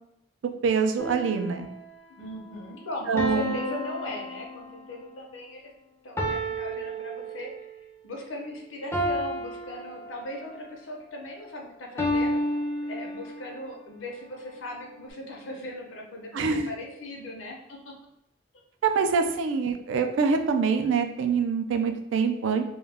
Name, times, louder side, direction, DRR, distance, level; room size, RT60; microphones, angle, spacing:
voice 1, 0.6-1.7 3.1-3.6 16.3-16.7 18.8-22.6, right 5 dB, 85° right, 6 dB, 0.3 m, -25 dB
sound 1, 1.0-1.8 3.2-5.0 6.2-7.8 8.9-10.6 12.0-13.6, equal, 15° left, 0.3 m, -31 dB
voice 2, 2.2-5.7 6.0-7.8 8.0-12.4 12.8-17.9, left 1 dB, 90° left, 0 dB, 0.6 m, -38 dB
2.3 x 2.1 x 3.3 m, 0.84 s
head